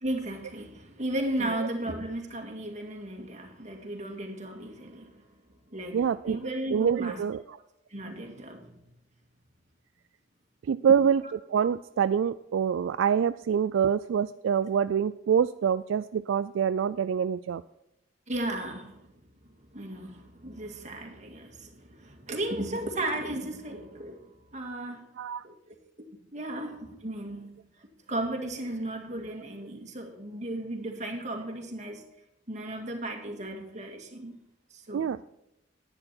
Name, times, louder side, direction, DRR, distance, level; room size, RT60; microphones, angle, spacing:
voice 1, 0.0-5.2 5.7-6.0 6.3-7.2 7.9-8.8 11.0-11.1 18.3-19.1 19.4-25.1 25.4-25.8 26.3-32.0 32.5-34.4 34.7-35.1, right 1 dB, 40° right, 2.1 m, -35 dB
voice 2, 5.9-6.4 6.7-7.6 10.7-11.2 11.5-17.6 25.2-25.4 34.9-35.2, right 7 dB, 75° right, 0.3 m, -26 dB
11.0 x 9.9 x 4.4 m
head